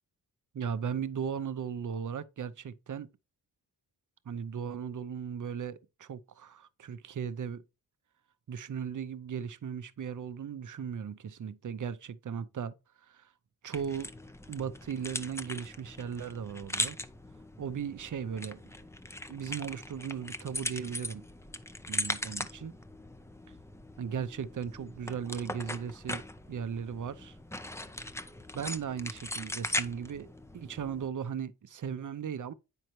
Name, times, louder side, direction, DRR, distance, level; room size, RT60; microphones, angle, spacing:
voice 1, 0.5-3.1 4.3-7.6 8.5-13.3 13.6-14.1 14.5-17.0 17.6-18.7 19.3-21.2 21.9-22.8 24.0-26.2 26.5-27.4 28.5-30.3 30.5-32.5, right 7 dB, 55° right, 0.6 m, -37 dB
sound 1, 13.7-31.1, left 1 dB, 5° left, 0.5 m, -40 dB
9.1 x 5.4 x 3.0 m
wide cardioid pair, 165°, 37 cm